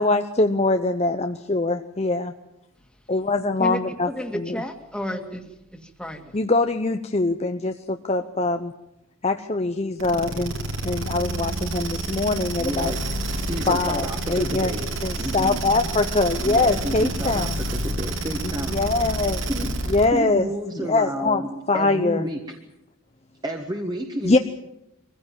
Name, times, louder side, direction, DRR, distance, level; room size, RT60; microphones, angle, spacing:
voice 1, 0.0-2.3 3.1-4.6 6.3-8.7 9.2-10.5 10.8-12.9 13.7-14.7 15.0-17.5 18.4-19.4 19.9-20.5 20.7-21.4 21.7-22.2 24.2-24.4, left 3 dB, 30° left, 7 dB, 0.7 m, -23 dB
voice 2, 3.6-5.4 5.7-6.3, equal, 5° left, 5 dB, 2.0 m, -32 dB
sound 1, 10.0-20.2, right 2 dB, 65° right, 2.9 m, -29 dB
sound 2, 12.5-19.4, left 1 dB, 45° left, 1.5 m, -40 dB
voice 3, 12.6-13.0 13.5-14.9 15.2-15.6 16.4-19.2 19.5-19.7 20.1-22.4 23.4-24.4, right 1 dB, 20° right, 2 dB, 1.6 m, -31 dB
24.0 x 16.0 x 9.1 m, 0.91 s
head